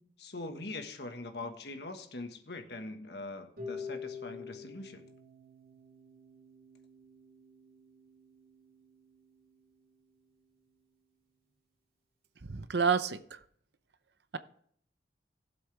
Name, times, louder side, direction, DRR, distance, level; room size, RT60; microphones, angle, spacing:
voice 1, 0.0-5.0, left 2 dB, 65° left, 1.5 m, -42 dB
Harp, 3.6-9.6, left 5 dB, 50° right, 4.4 m, -47 dB
voice 2, 12.4-13.4, right 6 dB, 70° right, 0.7 m, -29 dB
16.5 x 7.7 x 3.4 m
head